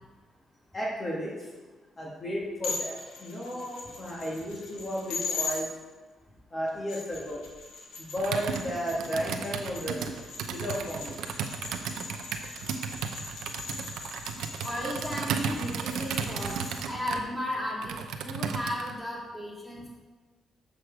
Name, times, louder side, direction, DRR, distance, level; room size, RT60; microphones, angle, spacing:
voice 1, 0.7-1.3 2.0-5.7 6.5-7.4 8.0-10.1 10.5-11.2, equal, 40° left, -5 dB, 2.0 m, -33 dB
sound 1, 2.6-5.6 6.7-16.9, left 5 dB, 90° left, 1.5 m, -40 dB
Computer keyboard, 8.2-18.9, right 6 dB, 85° right, 0.6 m, -35 dB
voice 2, 14.6-20.0, equal, 5° left, -4 dB, 2.9 m, -35 dB
7.6 x 6.5 x 4.7 m, 1.3 s
cardioid pair, 75°, 0 cm